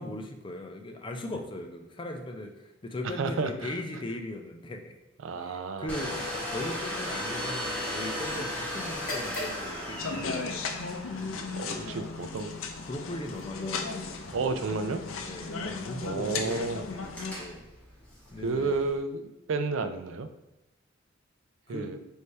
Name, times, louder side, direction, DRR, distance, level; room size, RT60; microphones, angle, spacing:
voice 1, 0.0-4.9 5.4-10.8 11.7-12.0 12.9-14.6 15.2-17.6 18.3-18.8 21.7-21.9, left 1 dB, 25° left, 4 dB, 0.4 m, -39 dB
voice 2, 3.2-3.8 5.2-6.2 11.5-12.6 14.3-15.0 16.0-16.8 18.4-20.3 21.7-22.0, right 4 dB, 70° right, 8 dB, 0.4 m, -31 dB
Domestic sounds home sounds, 5.9-19.0, left 1 dB, 5° left, 1.0 m, -38 dB
sound 1, 8.9-16.7, left 2 dB, 45° left, 1.0 m, -46 dB
sound 2, 10.0-17.3, left 4 dB, 90° left, 0.5 m, -36 dB
3.2 x 2.7 x 4.5 m, 0.95 s
head